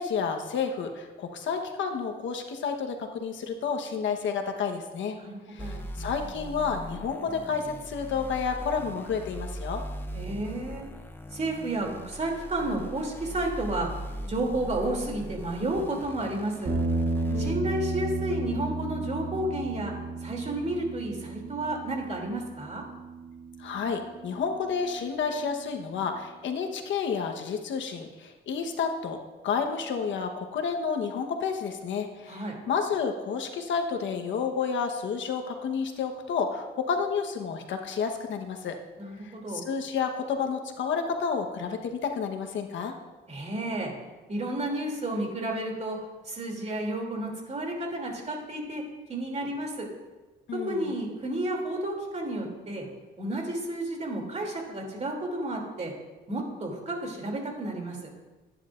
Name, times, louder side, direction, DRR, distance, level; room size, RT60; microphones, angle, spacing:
voice 1, 0.0-5.2 5.5-9.8 17.3-17.6 23.6-29.2 29.4-38.8 39.2-42.9 50.5-50.9, left 6 dB, 70° left, 4 dB, 1.2 m, -30 dB
voice 2, 5.2-5.8 10.1-10.9 11.3-13.9 14.3-16.7 17.4-19.9 20.2-22.8 32.3-32.6 39.0-39.6 43.3-43.9 44.3-46.0 46.2-48.8 49.1-49.9 50.5-52.9 53.2-55.9 56.3-58.0, right 1 dB, 35° right, 0 dB, 2.9 m, -31 dB
sound 1, 5.6-17.5, equal, 10° left, 0.8 m, -40 dB
sound 2, 16.6-25.0, right 2 dB, 60° right, 2.6 m, -33 dB
16.0 x 10.0 x 2.6 m, 1.2 s
cardioid pair, 90°, 20 cm